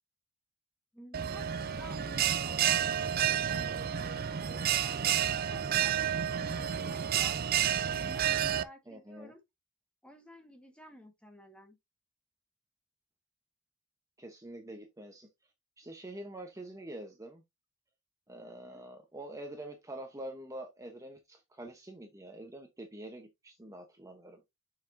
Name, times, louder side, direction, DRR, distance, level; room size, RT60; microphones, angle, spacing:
voice 1, 0.9-7.4 8.0-9.4 10.0-11.8 18.6-18.8, equal, 5° left, 1.6 m, -53 dB
Bell, 1.1-8.6, right 9 dB, 50° right, 0.5 m, -30 dB
voice 2, 8.9-9.3 14.2-15.3 15.8-17.4 18.3-24.4, right 1 dB, 15° right, 1.0 m, -46 dB
7.2 x 5.9 x 2.7 m
head